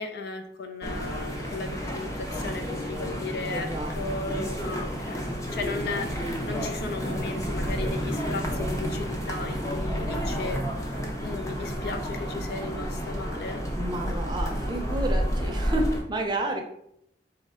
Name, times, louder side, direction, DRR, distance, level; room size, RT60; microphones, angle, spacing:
voice 1, 0.0-10.6 11.2-13.6, left 3 dB, 60° left, 6 dB, 0.5 m, -36 dB
sound 1, 0.8-16.0, equal, 20° left, 0.7 m, -30 dB
voice 2, 3.5-3.9 13.8-16.6, right 1 dB, 25° right, 3 dB, 0.6 m, -30 dB
4.2 x 3.1 x 3.6 m, 0.74 s
head